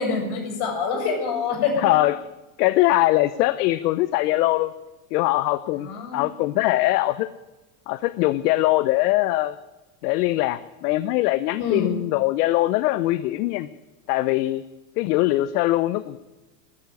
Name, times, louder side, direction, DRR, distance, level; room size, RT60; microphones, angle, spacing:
voice 1, 0.0-1.9 5.7-6.2 11.6-12.0, left 5 dB, 55° left, 2 dB, 7.0 m, -26 dB
voice 2, 1.8-2.2 2.6-4.7 5.1-7.3 7.9-9.6 10.0-13.7 14.1-14.6 15.0-16.2, left 17 dB, 70° left, 14 dB, 0.8 m, -22 dB
13.5 x 13.0 x 8.3 m, 1.1 s
supercardioid pair, 125°, 49 cm